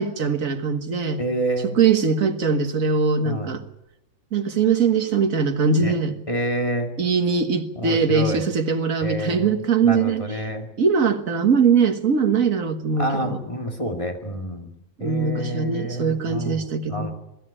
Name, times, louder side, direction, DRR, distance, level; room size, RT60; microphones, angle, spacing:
voice 1, 0.0-1.2 1.7-3.6 4.3-6.2 7.0-10.3 10.8-13.4 15.0-17.1, right 5 dB, 85° right, 1.9 m, -21 dB
voice 2, 1.2-1.7 3.2-3.6 5.8-5.9 6.3-6.9 7.8-8.4 9.0-9.6 9.8-10.7 13.0-14.7 15.0-17.1, right 1 dB, 25° left, 2.4 m, -28 dB
22.0 x 13.5 x 9.9 m
omnidirectional pair, 1.4 m